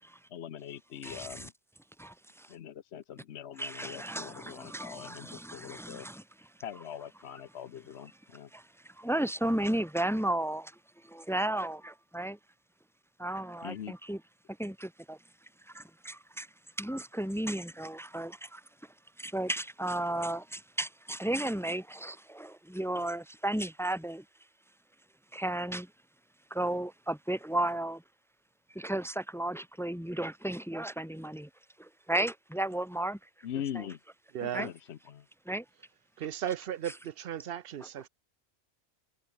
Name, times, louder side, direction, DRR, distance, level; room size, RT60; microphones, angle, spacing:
voice 1, 0.3-1.5 2.5-6.1 6.6-8.5 13.6-13.9 33.4-34.0 34.4-35.3, left 9 dB, 75° left, 1.1 m, -42 dB
voice 2, 1.0-1.4 2.0-2.5 3.6-6.2 8.5-10.7 11.0-12.4 13.2-14.2 14.6-15.2 15.7-16.5 16.8-18.6 19.2-24.2 25.3-25.9 26.5-28.0 28.7-31.5 31.8-33.2 34.5-34.7 35.5-35.6, right 1 dB, 5° left, 0.7 m, -34 dB
voice 3, 34.3-34.7 36.2-38.1, right 10 dB, 65° right, 0.8 m, -36 dB
omnidirectional pair, 1.1 m